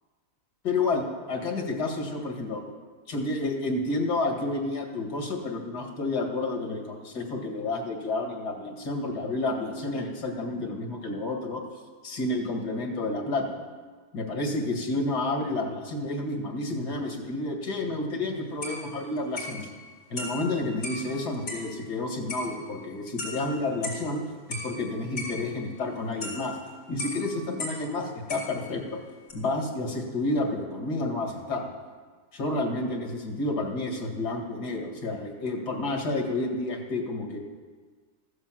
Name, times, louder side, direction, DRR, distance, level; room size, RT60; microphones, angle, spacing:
voice 1, 0.6-1.0 1.3-2.6 3.1-11.6 12.0-13.6 14.1-19.7 20.1-24.2 24.5-26.6 26.9-29.0 29.3-31.7 32.3-37.4, left 2 dB, 90° left, 2 dB, 2.5 m, -30 dB
sound 1, 18.3-18.4 18.6-21.8 22.3-24.2 24.5-27.9 28.3-28.9 29.3-29.4, left 2 dB, 55° left, 3.6 m, -38 dB
14.0 x 8.0 x 7.5 m, 1.5 s
omnidirectional pair, 1.7 m